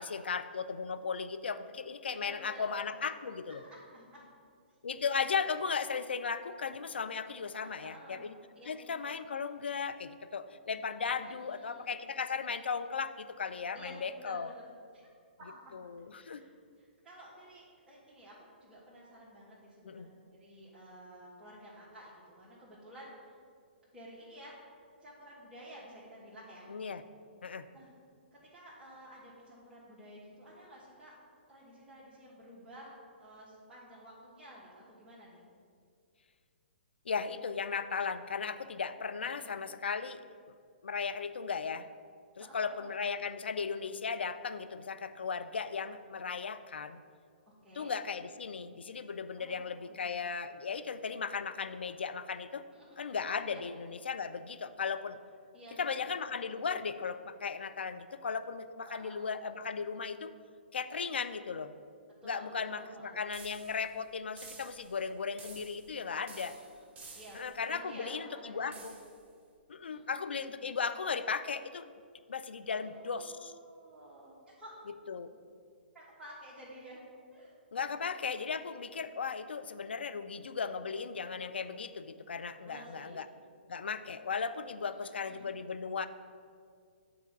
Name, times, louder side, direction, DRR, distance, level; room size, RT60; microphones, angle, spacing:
voice 1, 0.0-3.6 4.8-8.3 8.7-14.5 15.7-16.4 19.8-20.1 26.7-27.0 27.4-27.7 37.1-40.2 40.8-41.9 42.4-47.0 47.7-52.7 53.0-55.2 55.8-60.3 60.7-61.7 62.2-66.6 67.3-69.0 69.7-71.9 72.3-73.5 75.1-75.3 77.7-83.3 83.7-86.1, left 5 dB, 75° left, 10 dB, 0.4 m, -36 dB
voice 2, 2.1-2.6 3.5-4.3 7.6-8.3 8.5-8.9 11.2-11.9 13.7-14.7 15.4-15.8 16.1-16.5 16.8-18.3 18.6-23.4 23.9-24.6 25.0-26.7 27.7-27.9 28.3-31.2 31.5-35.4 39.3-39.6 42.4-43.0 47.6-47.9 49.4-50.3 52.7-53.1 53.5-53.6 55.5-56.0 58.9-59.2 62.2-63.2 66.3-66.8 67.1-67.4 67.7-68.9 69.9-70.7 72.7-74.7 75.0-75.1 75.9-77.0 77.3-77.5 82.6-83.3 84.9-85.5, right 1 dB, 10° right, -11 dB, 1.5 m, -52 dB
sound 1, 63.3-63.9 64.4-65.0 65.4-66.0 66.3-67.6 68.7-69.2, right 4 dB, 25° right, 1.1 m, -51 dB
8.5 x 3.9 x 5.2 m, 2.2 s
figure-of-eight pair, 120°, 6 cm